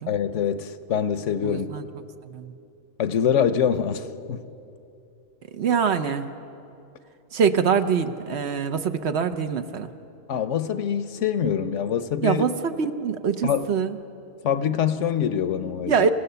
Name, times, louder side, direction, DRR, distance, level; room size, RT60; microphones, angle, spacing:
voice 1, 0.1-1.7 3.0-4.4 10.3-12.4 13.4-13.7 14.4-15.9, left 8 dB, 75° left, 12 dB, 1.1 m, -24 dB
voice 2, 1.4-1.9 2.3-2.5 5.5-6.3 7.3-9.9 12.2-14.0 15.9-16.1, right 6 dB, 60° right, 9 dB, 1.1 m, -24 dB
26.5 x 16.0 x 6.9 m, 2.7 s
omnidirectional pair, 1.3 m